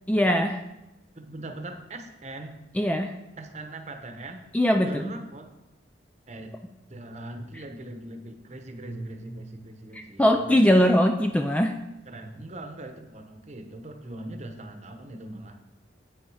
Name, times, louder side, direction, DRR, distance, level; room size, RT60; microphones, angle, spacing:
voice 1, 0.1-0.6 2.7-3.2 4.5-5.0 9.9-11.8, equal, 5° left, 5 dB, 0.3 m, -21 dB
voice 2, 1.1-2.6 3.4-4.4 4.8-5.5 6.3-6.6 6.9-10.6 12.1-15.5, right 1 dB, 35° right, 6 dB, 1.0 m, -40 dB
8.9 x 7.0 x 4.8 m, 0.95 s
head